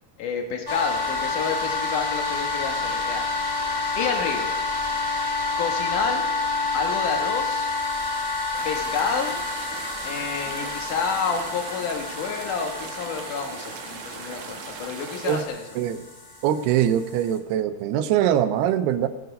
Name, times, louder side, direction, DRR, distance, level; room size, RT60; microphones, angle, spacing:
voice 1, 0.2-3.2 4.0-4.5 5.6-6.3 6.7-7.7 8.6-9.4 10.1-15.6, left 6 dB, 65° left, 3 dB, 2.5 m, -29 dB
sound 1, 0.7-17.4, left 3 dB, 25° left, 0.6 m, -29 dB
sound 2, 8.5-15.4, right 7 dB, 70° right, 2.1 m, -39 dB
voice 2, 16.4-19.1, right 10 dB, 90° right, 11 dB, 2.8 m, -22 dB
16.5 x 9.4 x 5.4 m, 1.1 s
omnidirectional pair, 4.6 m